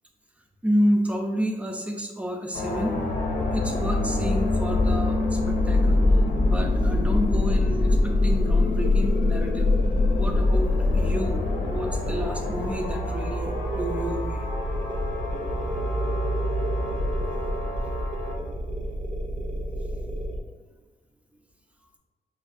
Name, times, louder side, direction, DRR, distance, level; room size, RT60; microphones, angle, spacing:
voice 1, 0.6-3.0 3.5-6.0 6.4-9.7 10.1-14.4, equal, 10° right, 2 dB, 0.3 m, -30 dB
sound 1, 2.5-18.3, left 2 dB, 75° left, 0.6 m, -25 dB
sound 2, 3.1-20.4, equal, 55° right, 0.6 m, -32 dB
4.3 x 2.5 x 2.4 m, 1.3 s
wide cardioid pair, 175°, 16 cm